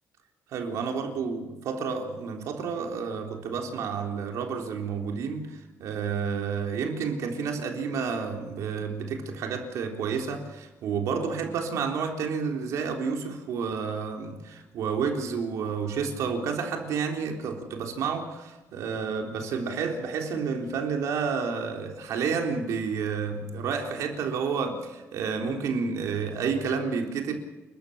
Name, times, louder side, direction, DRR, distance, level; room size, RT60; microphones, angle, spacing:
voice 1, 0.5-27.3, right 5 dB, 80° right, 3.7 m, -30 dB
29.5 x 13.5 x 7.3 m
cardioid pair, 110°, 5 cm